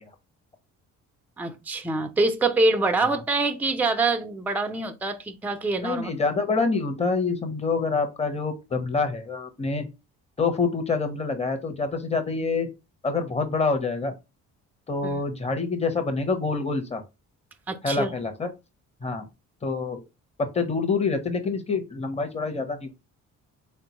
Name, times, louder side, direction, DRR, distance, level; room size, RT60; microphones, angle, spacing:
voice 1, 1.4-6.1 15.0-15.2 17.7-18.1, right 3 dB, 5° right, 0.4 m, -25 dB
voice 2, 5.8-9.9 10.4-12.7 13.0-14.1 14.9-17.0 17.8-18.5 19.0-19.2 19.6-20.0 20.4-22.9, left 4 dB, 20° left, 0.8 m, -26 dB
3.6 x 2.2 x 2.9 m
supercardioid pair, 65°, 34 cm